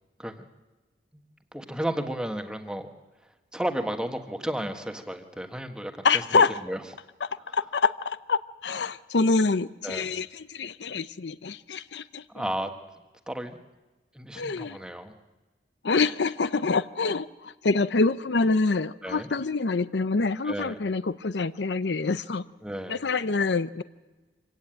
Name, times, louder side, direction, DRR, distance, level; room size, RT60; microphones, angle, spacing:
voice 1, 1.5-2.9 3.5-6.8 7.3-7.6 9.8-10.2 12.3-12.7 13.3-13.6 14.1-15.1 19.0-19.3 20.4-20.8 22.6-23.0, right 1 dB, 5° right, 6 dB, 1.5 m, -33 dB
voice 2, 6.0-6.5 7.5-10.3 10.5-12.2 14.4-14.8 15.8-17.3 17.6-22.4 22.9-23.8, left 4 dB, 80° left, 15 dB, 0.7 m, -25 dB
25.5 x 16.5 x 9.1 m, 1.2 s
head